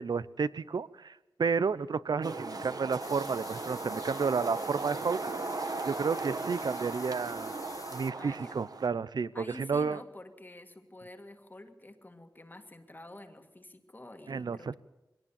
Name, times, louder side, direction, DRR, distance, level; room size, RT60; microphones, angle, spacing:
voice 1, 0.0-5.3 5.9-7.5 7.9-10.0 14.3-14.8, right 5 dB, 75° right, 17 dB, 0.7 m, -31 dB
voice 2, 1.6-2.0 8.2-8.6 9.3-14.8, left 1 dB, 25° left, 6 dB, 1.9 m, -49 dB
sound 1, 2.2-8.9, right 3 dB, 60° right, 1.6 m, -37 dB
sound 2, 3.0-8.1, left 4 dB, 55° left, 0.7 m, -49 dB
23.0 x 18.0 x 7.2 m, 0.96 s
wide cardioid pair, 95°, 7 cm